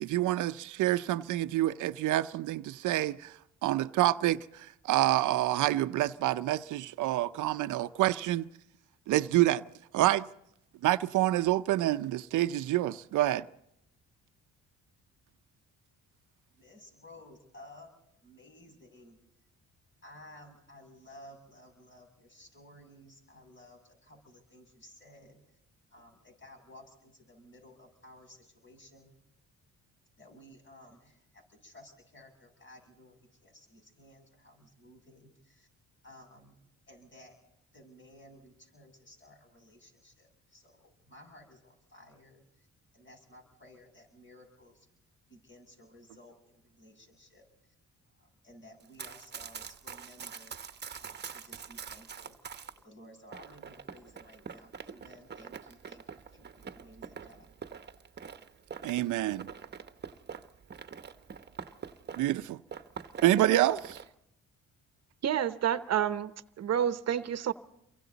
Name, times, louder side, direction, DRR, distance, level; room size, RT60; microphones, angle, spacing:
voice 1, 0.0-3.3 3.6-8.4 9.1-9.6 9.9-10.3 10.8-13.4 58.8-59.4 62.2-62.6 63.2-64.0, right 15 dB, 85° right, 0.7 m, -27 dB
voice 2, 16.5-19.2 20.0-25.6 25.9-29.1 30.2-35.7 36.0-36.6 36.9-37.3 37.7-42.7 42.9-44.9 45.3-47.7 48.1-57.5, left 1 dB, 40° left, 7.3 m, -56 dB
Run, 48.8-52.8 53.3-62.4 62.7-64.1, right 6 dB, 35° right, 1.1 m, -45 dB
voice 3, 65.2-66.3 66.6-67.5, right 9 dB, 60° right, 0.9 m, -29 dB
28.5 x 23.5 x 4.1 m
cardioid pair, 90°, 30 cm